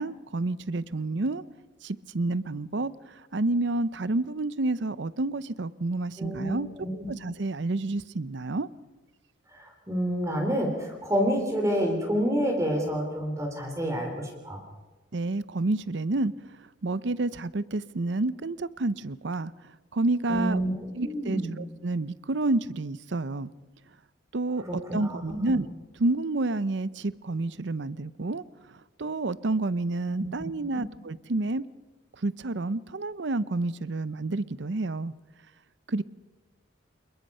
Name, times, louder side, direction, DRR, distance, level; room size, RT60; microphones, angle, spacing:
voice 1, 0.0-1.4 1.8-6.7 6.9-8.7 15.1-16.3 16.8-19.5 19.9-20.6 21.0-23.5 24.3-25.7 26.0-28.4 28.7-31.7 32.2-35.1 35.9-36.0, right 2 dB, 65° right, 18 dB, 0.7 m, -29 dB
voice 2, 6.2-7.1 9.5-14.6 20.3-20.7 21.0-21.5 24.6-25.6 30.2-30.3, equal, 15° right, 2 dB, 3.4 m, -29 dB
28.5 x 21.0 x 5.5 m, 1.2 s
head